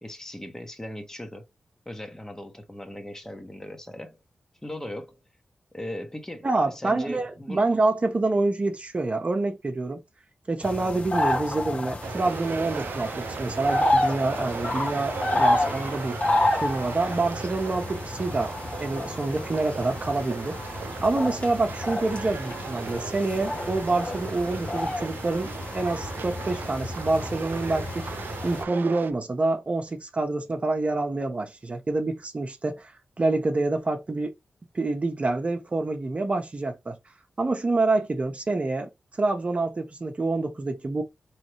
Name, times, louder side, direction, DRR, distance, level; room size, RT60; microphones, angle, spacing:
voice 1, 0.0-1.4 1.9-4.2 4.6-5.2 5.7-7.6, left 1 dB, 15° left, 1.0 m, -38 dB
voice 2, 6.4-10.0 10.5-16.2 16.5-18.5 18.8-20.6 21.0-28.1 28.4-32.9 33.2-34.3 34.7-37.0 37.4-38.9 39.2-41.0, right 2 dB, 40° right, 0.9 m, -27 dB
sound 1, 10.6-28.6, left 1 dB, 45° left, 1.2 m, -30 dB
sound 2, 12.0-29.1, right 6 dB, 85° right, 0.4 m, -38 dB
3.8 x 3.2 x 3.1 m
cardioid pair, 70°, 3 cm